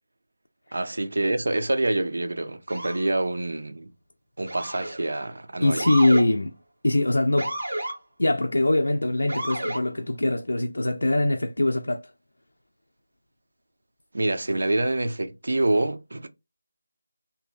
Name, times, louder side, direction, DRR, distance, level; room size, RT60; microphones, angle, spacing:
voice 1, 0.7-3.9 4.4-5.8 14.1-16.3, right 2 dB, 55° right, 0.4 m, -26 dB
Motor vehicle (road) / Siren, 2.7-3.1 4.5-5.0 5.8-6.3 7.4-8.0 9.3-9.8, right 1 dB, 35° right, 0.9 m, -30 dB
voice 2, 5.6-6.6 6.8-7.6 8.2-12.0, left 2 dB, 90° left, 0.3 m, -22 dB
2.6 x 2.0 x 2.3 m
figure-of-eight pair, 180°, 0 cm